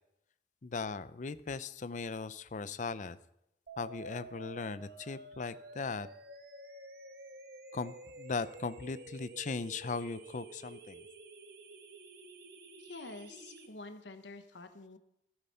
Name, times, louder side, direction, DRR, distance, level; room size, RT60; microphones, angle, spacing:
voice 1, 0.6-3.2 3.8-6.1 7.7-11.0, left 4 dB, 45° left, 14 dB, 0.5 m, -38 dB
sound 1, 3.7-13.7, right 1 dB, 60° right, 1.4 m, -50 dB
voice 2, 12.8-15.0, left 3 dB, 90° left, 8 dB, 1.1 m, -48 dB
13.5 x 8.1 x 5.6 m, 0.80 s
head